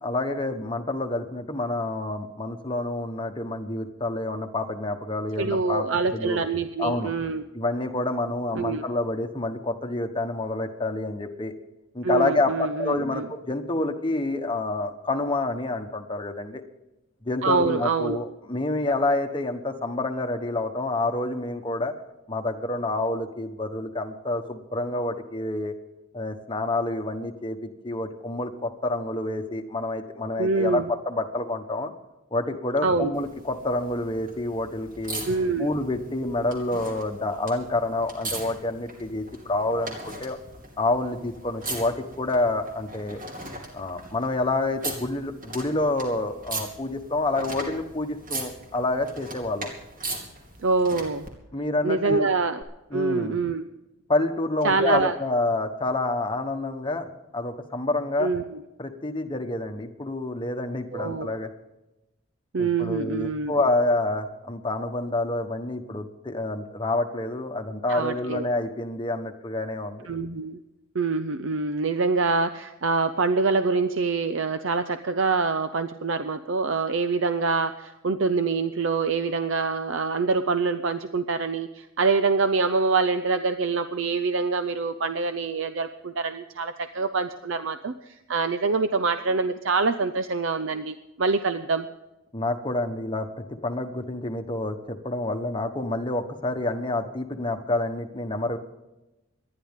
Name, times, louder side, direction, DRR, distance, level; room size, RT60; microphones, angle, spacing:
voice 1, 0.0-5.8 6.1-6.4 6.8-7.1 7.5-11.5 11.9-16.6 17.2-21.9 22.3-25.7 26.1-31.9 32.3-35.2 35.6-40.4 40.8-43.2 43.7-49.7 51.5-52.3 52.9-53.4 54.1-58.3 58.8-61.5 62.6-70.1 92.3-93.3 93.6-98.6, left 2 dB, 25° left, 5 dB, 1.2 m, -28 dB
voice 2, 5.4-7.4 8.5-8.8 12.0-13.3 17.4-18.2 30.4-30.9 32.8-33.1 35.2-35.7 50.6-51.3 51.8-52.6 52.9-53.6 54.6-55.2 58.2-58.6 60.9-61.3 62.5-63.5 67.9-68.5 70.1-70.6 70.9-91.9, right 4 dB, 65° right, 10 dB, 0.6 m, -25 dB
sound 1, 33.1-51.3 52.6-52.7, right 2 dB, 40° right, 2.8 m, -39 dB
26.0 x 11.0 x 3.7 m, 0.98 s
head